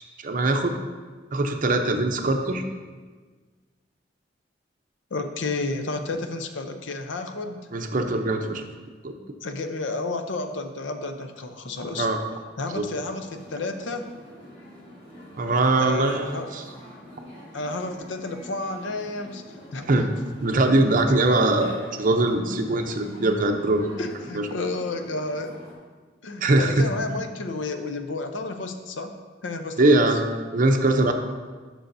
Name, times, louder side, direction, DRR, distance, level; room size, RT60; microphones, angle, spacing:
voice 1, 0.2-0.7 1.3-2.6 7.7-8.6 9.0-9.1 12.0-12.2 12.7-12.8 15.4-16.6 19.9-20.1 20.4-23.9 24.3-24.5 26.4-26.7 29.8-30.2 30.5-31.1, right 2 dB, 45° right, 5 dB, 0.6 m, -22 dB
voice 2, 5.1-7.6 9.4-12.1 12.6-14.1 15.8-16.5 17.5-20.1 24.0-25.6 26.2-30.1, left 3 dB, 85° left, 7 dB, 0.7 m, -31 dB
sound 1, 12.8-25.7, left 1 dB, 35° left, 2.4 m, -45 dB
11.0 x 6.2 x 2.7 m, 1.4 s
head